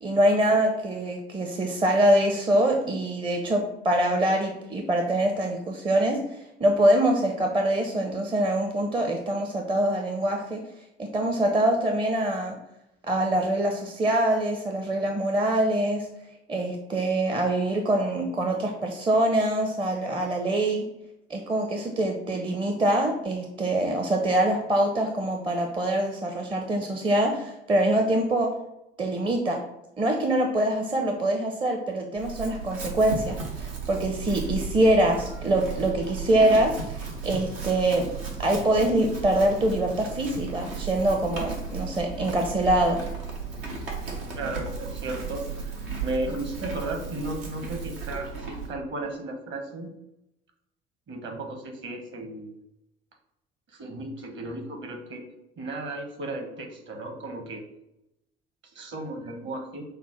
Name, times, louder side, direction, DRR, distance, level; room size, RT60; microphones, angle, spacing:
voice 1, 0.0-10.6 11.0-12.5 13.1-16.1 16.5-20.8 21.3-28.5 29.0-29.6 30.0-38.1 38.4-43.0, right 1 dB, 15° right, 3 dB, 0.6 m, -24 dB
Chewing mastication / Livestock farm animals working animals, 32.2-48.7, right 4 dB, 75° right, 1.0 m, -35 dB
voice 2, 44.4-45.7 46.0-49.9 51.1-52.6 53.7-55.2 55.6-57.6 58.7-59.8, right 2 dB, 40° right, 4 dB, 1.1 m, -34 dB
5.5 x 2.1 x 4.3 m, 0.87 s
figure-of-eight pair, 60°, 29 cm